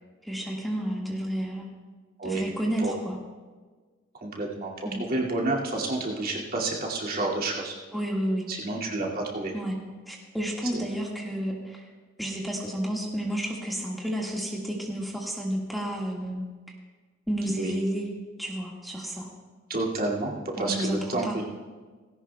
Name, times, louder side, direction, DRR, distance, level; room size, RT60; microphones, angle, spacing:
voice 1, 0.2-1.7 2.2-3.2 4.8-5.0 7.9-8.4 9.5-9.8 10.1-11.9 12.2-16.4 17.3-18.1 18.4-19.3 20.6-21.4, right 1 dB, ahead, -3 dB, 1.8 m, -31 dB
voice 2, 4.2-4.7 5.0-7.8 8.5-9.5 10.7-10.8 17.6-17.7 19.7-21.5, right 2 dB, 50° right, -3 dB, 2.4 m, -29 dB
18.5 x 17.0 x 2.3 m, 1.4 s
head